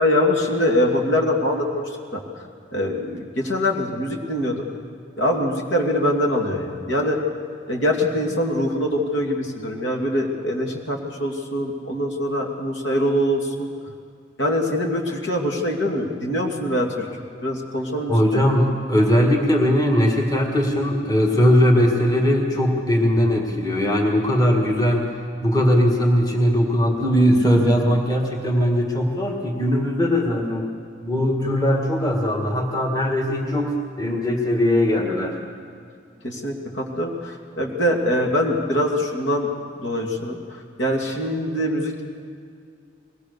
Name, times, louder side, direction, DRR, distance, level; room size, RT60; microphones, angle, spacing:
voice 1, 0.0-2.2 2.7-4.7 5.2-7.2 7.7-13.7 14.4-17.1 17.4-18.2 36.2-39.5 39.8-42.0, left 1 dB, 75° left, 1 dB, 2.6 m, -23 dB
voice 2, 18.1-25.1 25.4-30.7 31.0-35.4, equal, 20° left, 1 dB, 1.9 m, -19 dB
22.0 x 18.5 x 6.8 m, 2.3 s
head